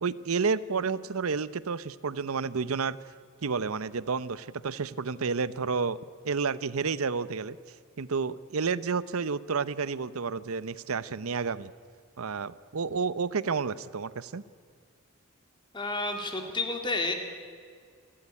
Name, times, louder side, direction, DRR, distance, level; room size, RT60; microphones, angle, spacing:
voice 1, 0.0-3.0 3.4-6.0 6.2-7.6 8.0-11.7 12.2-14.4, right 5 dB, 85° right, 17 dB, 0.7 m, -30 dB
voice 2, 15.7-17.1, left 3 dB, 20° left, 4 dB, 2.3 m, -30 dB
28.5 x 13.0 x 9.9 m, 2.1 s
head